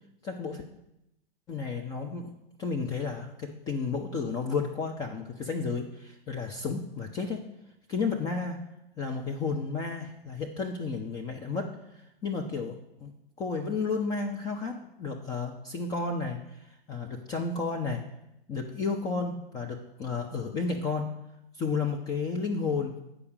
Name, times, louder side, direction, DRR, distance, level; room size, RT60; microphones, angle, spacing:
voice 1, 0.2-0.6 1.5-2.3 2.6-7.5 7.9-8.6 9.0-13.1 13.4-18.0 18.5-21.1 21.5-22.9, left 4 dB, 15° left, 2 dB, 0.4 m, -32 dB
8.3 x 5.0 x 6.5 m, 0.86 s
figure-of-eight pair, 100°, 29 cm